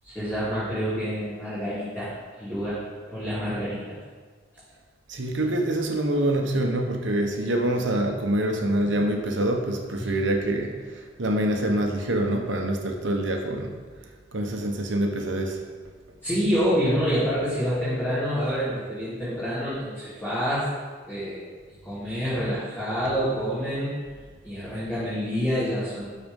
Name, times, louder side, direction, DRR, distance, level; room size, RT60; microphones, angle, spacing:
voice 1, 0.0-2.1 2.4-2.8 3.1-3.9 10.0-10.1 16.2-20.6 21.1-21.4 21.8-23.9 24.4-26.2, equal, 10° left, -13 dB, 3.0 m, -27 dB
voice 2, 5.1-13.8 14.3-15.6 16.1-16.2 23.0-23.2, right 1 dB, 75° right, 3 dB, 1.0 m, -26 dB
12.5 x 4.3 x 5.3 m, 1.5 s
head